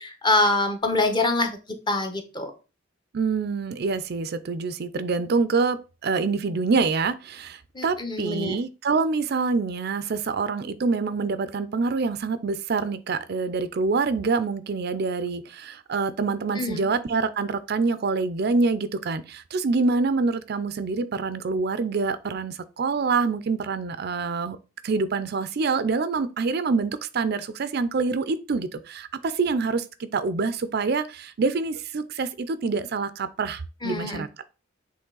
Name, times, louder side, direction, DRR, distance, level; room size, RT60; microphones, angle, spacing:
voice 1, 0.0-1.6 1.9-2.5 7.7-8.6 16.6-16.9 33.8-34.2, left 2 dB, 20° left, 0.9 m, -25 dB
voice 2, 3.1-24.6 24.8-34.3, right 4 dB, 50° right, 0.4 m, -26 dB
7.8 x 3.3 x 3.8 m
head